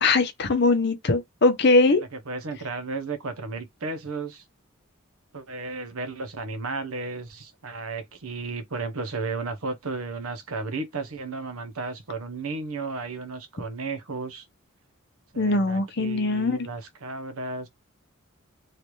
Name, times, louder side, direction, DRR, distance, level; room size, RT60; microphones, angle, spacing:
voice 1, 0.0-2.0 15.4-16.6, left 3 dB, 50° left, 0.7 m, -21 dB
voice 2, 2.0-4.4 5.3-14.4 15.3-17.7, right 3 dB, 85° right, 0.9 m, -34 dB
3.2 x 2.5 x 3.0 m
head